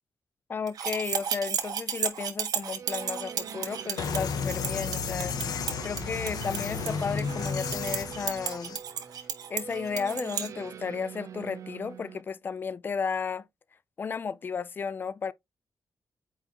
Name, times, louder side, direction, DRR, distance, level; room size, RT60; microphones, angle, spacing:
voice 1, 0.5-5.4 5.8-8.8 9.5-13.5 14.0-15.3, left 5 dB, 30° left, 0.4 m, -33 dB
sound 1, 0.7-10.5, right 8 dB, 80° right, 1.4 m, -34 dB
sound 2, 2.8-12.2, right 8 dB, 55° right, 0.6 m, -43 dB
sound 3, 4.0-8.8, left 6 dB, 90° left, 1.1 m, -33 dB
8.9 x 4.5 x 2.9 m
wide cardioid pair, 180°, 6 cm